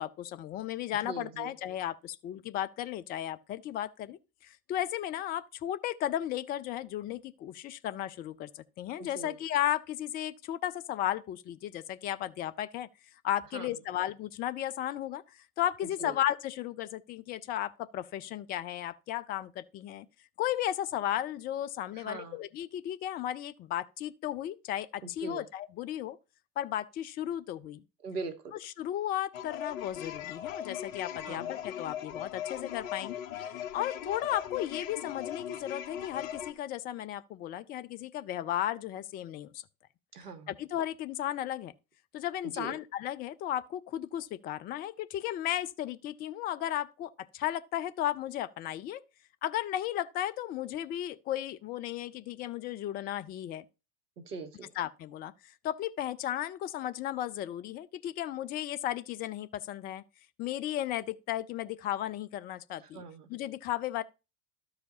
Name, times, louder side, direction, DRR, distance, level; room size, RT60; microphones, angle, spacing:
voice 1, 0.0-12.9 13.2-15.2 15.6-20.1 20.4-26.2 26.6-27.8 28.6-39.6 40.5-41.7 42.1-49.0 49.4-53.6 54.8-55.3 55.6-60.0 60.4-63.0 63.3-64.0, left 12 dB, 20° left, 0.4 m, -35 dB
voice 2, 1.0-1.5 9.1-9.4 13.5-13.7 16.0-16.1 21.9-22.4 25.2-25.4 28.0-28.5 31.2-31.6 40.1-40.5 42.5-42.7 54.2-54.7 62.8-63.3, right 4 dB, 80° right, 1.4 m, -41 dB
sound 1, 29.3-36.5, left 10 dB, 55° left, 1.1 m, -39 dB
13.0 x 4.8 x 2.7 m
hypercardioid pair, 85°, 46 cm